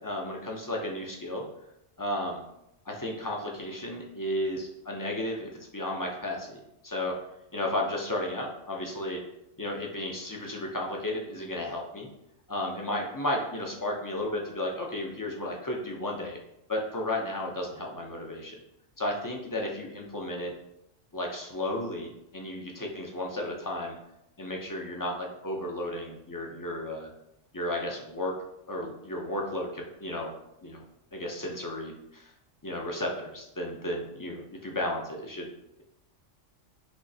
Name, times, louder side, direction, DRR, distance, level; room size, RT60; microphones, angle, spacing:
voice 1, 0.0-1.5 2.0-2.4 2.9-7.1 7.5-9.2 9.6-12.1 12.5-16.4 16.7-18.6 19.0-20.5 21.1-24.0 24.4-27.1 27.5-28.3 28.7-30.3 30.6-30.8 31.1-32.3 32.6-35.5, left 1 dB, 25° left, 0 dB, 0.5 m, -33 dB
6.1 x 3.1 x 2.7 m, 0.82 s
omnidirectional pair, 1.2 m